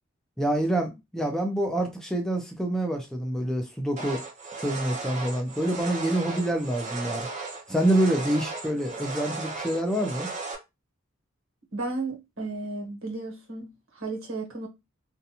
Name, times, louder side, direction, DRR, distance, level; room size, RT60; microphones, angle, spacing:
voice 1, 0.4-4.2 4.6-7.3 7.7-10.3, right 1 dB, 5° left, 0.4 m, -27 dB
sound 1, 4.0-10.5, right 3 dB, 35° right, 0.6 m, -36 dB
voice 2, 11.7-14.7, right 3 dB, 80° right, 1.2 m, -34 dB
2.5 x 2.2 x 2.7 m
head